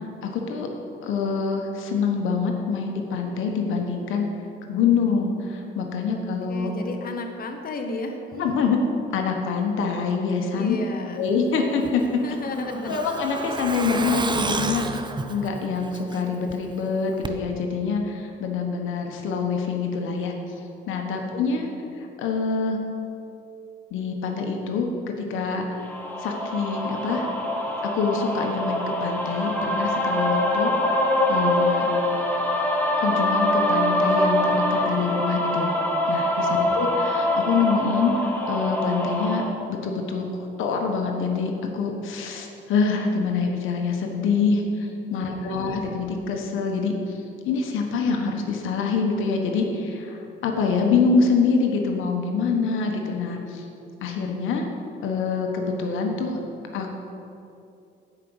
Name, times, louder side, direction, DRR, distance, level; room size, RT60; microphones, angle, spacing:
voice 1, 0.2-0.7 1.0-4.3 4.7-6.7 8.3-8.8 9.1-10.8 11.2-12.2 12.9-14.8 15.3-20.3 20.9-21.7 22.2-22.8 23.9-24.9 25.2-25.8 26.2-27.3 27.8-30.7 31.3-31.9 33.0-35.7 36.1-39.4 39.7-40.2 40.6-47.2 47.4-53.7 54.0-54.7 55.0-56.4 56.7-56.9, left 5 dB, 85° left, 2 dB, 1.2 m, -25 dB
voice 2, 6.1-8.5 10.6-11.2 12.2-12.9 21.1-21.8 36.5-36.9 45.1-45.6, left 2 dB, 50° left, 4 dB, 1.1 m, -34 dB
Truck, 11.8-16.5 16.8-16.9 17.2-17.3, right 3 dB, 20° right, 0.6 m, -31 dB
sound 1, 25.9-39.4, left 1 dB, 10° left, 1.7 m, -24 dB
9.9 x 5.2 x 7.9 m, 2.7 s
cardioid pair, 90°, 20 cm